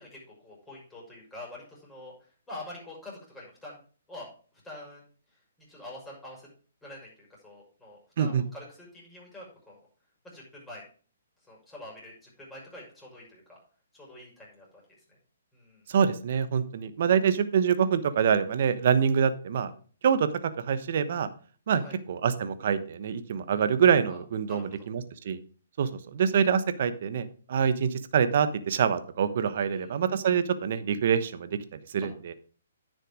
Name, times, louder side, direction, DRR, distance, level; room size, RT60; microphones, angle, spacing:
voice 1, 0.0-3.8 4.1-4.3 4.6-5.0 5.3-6.5 6.8-9.9 10.2-10.8 11.5-13.6 13.9-14.8 15.1-15.2 15.5-15.8 21.8-22.0 24.1-24.2 24.5-24.9 29.6-30.0, left 1 dB, 10° left, -4 dB, 6.2 m, -46 dB
voice 2, 15.9-19.7 20.0-21.3 21.7-21.8 22.1-25.4 25.8-32.3, right 7 dB, 55° right, 12 dB, 1.1 m, -25 dB
10.0 x 6.7 x 5.0 m, 0.41 s
hypercardioid pair, 140°, 0 cm